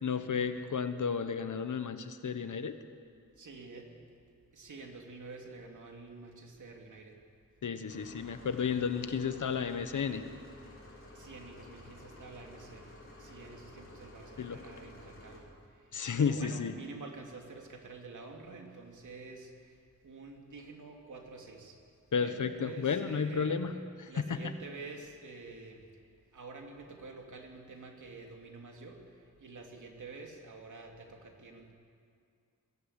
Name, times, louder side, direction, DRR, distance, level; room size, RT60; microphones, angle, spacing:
voice 1, 0.0-2.7 7.6-10.2 14.4-14.6 15.9-16.7 22.1-23.7 24.2-24.4, left 6 dB, 75° left, 9 dB, 1.3 m, -32 dB
voice 2, 3.4-4.0 4.5-7.2 11.1-15.5 16.2-19.7 20.0-21.8 22.2-23.6 24.1-25.8 26.3-29.0 29.4-31.7, right 3 dB, 75° right, 1 dB, 3.0 m, -48 dB
sound 1, 7.9-15.4, left 1 dB, 40° left, 5.0 m, -52 dB
22.0 x 16.5 x 8.3 m, 2.3 s
wide cardioid pair, 120°, 30 cm